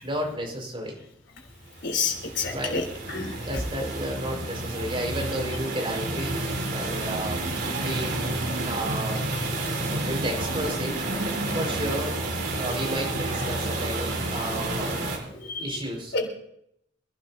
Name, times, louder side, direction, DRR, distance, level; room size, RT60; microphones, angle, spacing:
voice 1, 0.0-1.0 2.5-2.8 3.4-6.4 6.7-8.3 8.6-9.2 10.0-10.9 11.5-12.2 12.5-16.1, equal, 30° right, 0 dB, 5.4 m, -32 dB
voice 2, 1.8-2.8 3.1-3.3 15.5-15.6 16.1-16.3, left 4 dB, 65° left, 1 dB, 4.1 m, -28 dB
sound 1, 1.8-15.2, right 2 dB, 60° right, 4.3 m, -30 dB
26.5 x 12.0 x 2.9 m, 0.73 s
head